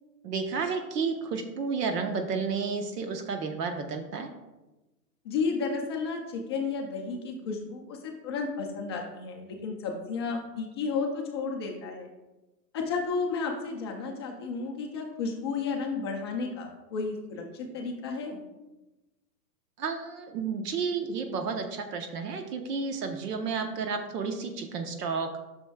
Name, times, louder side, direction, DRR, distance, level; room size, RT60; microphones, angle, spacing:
voice 1, 0.2-4.3 19.8-25.3, right 5 dB, 70° right, 5 dB, 1.0 m, -31 dB
voice 2, 5.2-12.1 12.7-18.4, left 4 dB, 20° left, 0 dB, 0.4 m, -32 dB
9.1 x 6.2 x 2.3 m, 1.1 s
hypercardioid pair, 135°, 49 cm